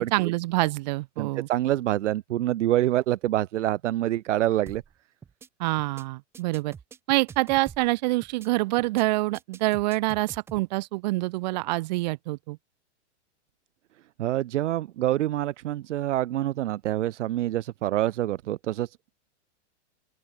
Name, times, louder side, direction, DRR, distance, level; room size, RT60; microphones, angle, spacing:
voice 1, 0.0-1.5 5.6-6.7 7.1-12.6, right 20 dB, 35° right, 1.9 m, -26 dB
voice 2, 1.2-4.8 14.2-18.9, right 13 dB, 80° right, 0.8 m, -26 dB
sound 1, 4.7-4.9 5.2-5.5 5.8-6.0 6.3-7.9 8.2-8.5 8.8-9.0 9.3-10.6, right 6 dB, 5° right, 0.8 m, -46 dB
open air
supercardioid pair, 175°, 36 cm